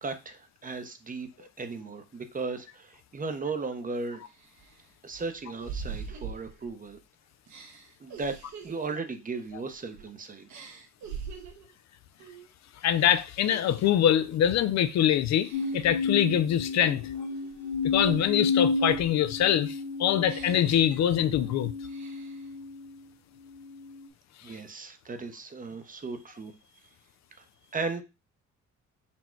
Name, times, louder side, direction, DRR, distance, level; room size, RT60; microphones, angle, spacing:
voice 1, 0.0-4.2 5.0-7.0 8.0-8.4 8.6-10.5 24.4-26.5 27.7-28.0, right 4 dB, 25° right, 0.7 m, -36 dB
sound 1, 3.6-3.7 4.2-7.0 7.5-10.1 10.5-11.7 12.2-12.5 12.8-14.1 14.5-14.9 15.4-16.0 16.5-18.4 18.8-21.5 21.8-22.5, right 6 dB, 70° right, 1.2 m, -45 dB
voice 2, 12.8-17.1 17.8-21.7, left 10 dB, 65° left, 0.5 m, -24 dB
sound 2, 15.5-22.9 23.6-24.1, left 4 dB, 80° left, 0.8 m, -32 dB
4.3 x 2.3 x 4.4 m
cardioid pair, 90°, 30 cm